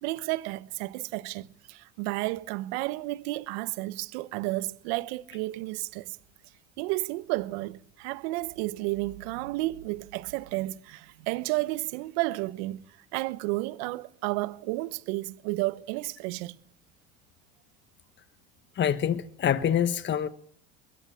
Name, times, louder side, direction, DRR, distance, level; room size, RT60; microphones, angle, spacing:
voice 1, 0.0-6.2 6.8-12.8 13.1-16.6, right 20 dB, 70° right, 1.1 m, -32 dB
voice 2, 18.7-20.3, left 9 dB, 35° left, 1.2 m, -26 dB
22.0 x 16.5 x 8.8 m
hypercardioid pair, 90°, 32 cm